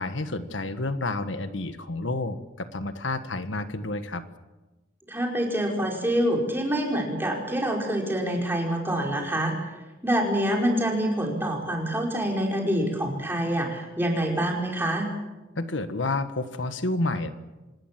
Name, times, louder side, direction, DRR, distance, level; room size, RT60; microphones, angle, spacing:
voice 1, 0.0-4.2 15.6-17.3, left 2 dB, 80° left, 10 dB, 1.5 m, -30 dB
voice 2, 5.1-9.6 10.0-15.1, right 1 dB, 10° right, 0 dB, 5.2 m, -26 dB
26.0 x 20.0 x 7.6 m, 1.1 s
head